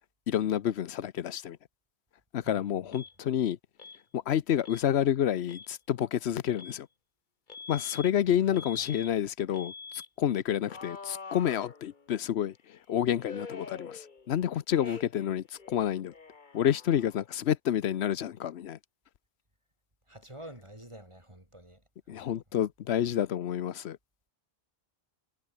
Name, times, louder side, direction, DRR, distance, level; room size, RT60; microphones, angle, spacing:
voice 1, 0.3-1.6 2.3-3.6 4.1-6.9 7.7-16.1 16.5-18.8 22.1-24.0, left 10 dB, 85° left, 1.0 m, -29 dB
voice 2, 2.4-3.0 8.4-8.6 9.0-9.1 14.8-15.0 20.1-22.4, right 1 dB, 30° right, 6.5 m, -49 dB
Alarm, 2.9-3.1 3.8-4.0 4.6-4.9 5.4-5.7 6.6-6.8 7.5-8.1 8.5-9.1 9.5-10.1 10.7-12.2 13.2-14.4 14.7-15.3 15.6-17.3, left 4 dB, 50° left, 1.6 m, -45 dB
omnidirectional pair, 1.1 m